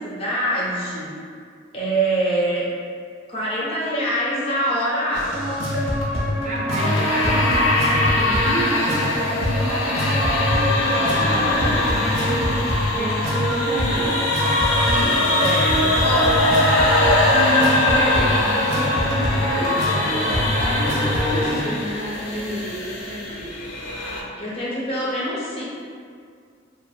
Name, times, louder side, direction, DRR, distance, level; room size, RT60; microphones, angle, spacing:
voice 1, 0.0-1.1 1.7-2.7 3.3-5.6 14.9-16.5 24.4-25.6, right 1 dB, 30° left, -7 dB, 0.5 m, -25 dB
sound 1, 5.1-21.6, left 1 dB, 85° right, 0.5 m, -24 dB
voice 2, 6.4-12.7 12.9-14.3 17.3-23.6, equal, 35° right, -4 dB, 0.3 m, -29 dB
sound 2, 6.8-24.2, left 1 dB, 90° left, 0.4 m, -22 dB
2.8 x 2.0 x 2.3 m, 2.2 s
head